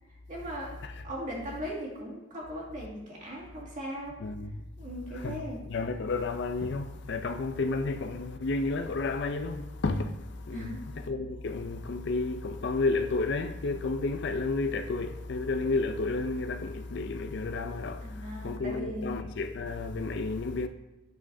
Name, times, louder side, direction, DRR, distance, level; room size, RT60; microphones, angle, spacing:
voice 1, 0.1-4.2 4.8-5.6 10.5-10.9 18.0-19.2, equal, 40° right, 2.0 m, -39 dB
voice 2, 4.2-4.6 5.1-5.4 5.7-20.7, left 3 dB, 65° left, 0.5 m, -31 dB
8.4 x 6.2 x 2.7 m
head